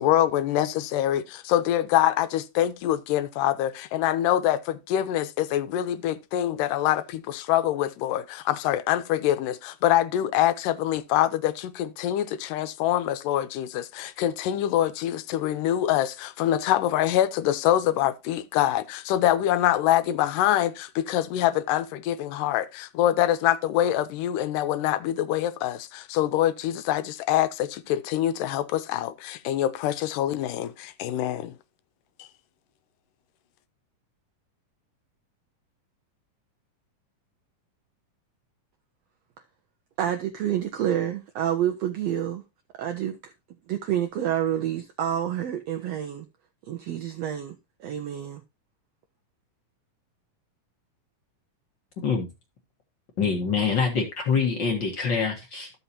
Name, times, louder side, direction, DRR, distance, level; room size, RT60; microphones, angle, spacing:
voice 1, 0.0-31.6 32.2-32.3, left 12 dB, 85° left, 2.2 m, -25 dB
voice 2, 40.0-42.4 42.8-43.3 43.7-46.3 46.7-47.5 47.8-48.4, right 10 dB, 80° right, 1.4 m, -28 dB
voice 3, 52.0-52.3 53.2-55.7, left 5 dB, 55° left, 1.3 m, -25 dB
13.5 x 5.6 x 2.7 m
omnidirectional pair, 3.8 m